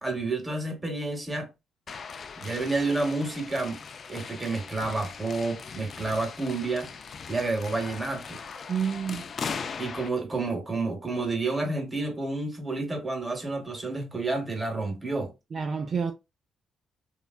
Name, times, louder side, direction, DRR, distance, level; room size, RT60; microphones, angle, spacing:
voice 1, 0.0-1.5 2.4-3.8 4.1-6.9 7.3-8.4 9.8-15.3, right 3 dB, 20° right, 1.0 m, -30 dB
sound 1, 1.9-10.1, left 5 dB, 45° left, 0.3 m, -39 dB
voice 2, 8.7-9.3 15.5-16.1, right 6 dB, 45° right, 0.3 m, -29 dB
3.1 x 2.3 x 2.3 m
cardioid pair, 90°, 0 cm